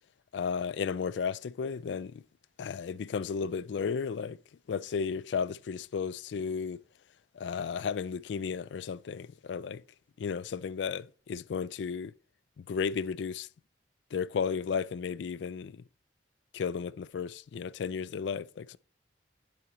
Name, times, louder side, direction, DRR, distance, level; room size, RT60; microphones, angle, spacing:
voice 1, 0.3-2.2 2.6-4.4 4.7-6.8 7.3-9.8 10.2-12.1 12.6-13.5 14.1-15.8 16.5-18.8, left 6 dB, 75° left, 0.4 m, -34 dB
11.5 x 4.9 x 3.1 m
head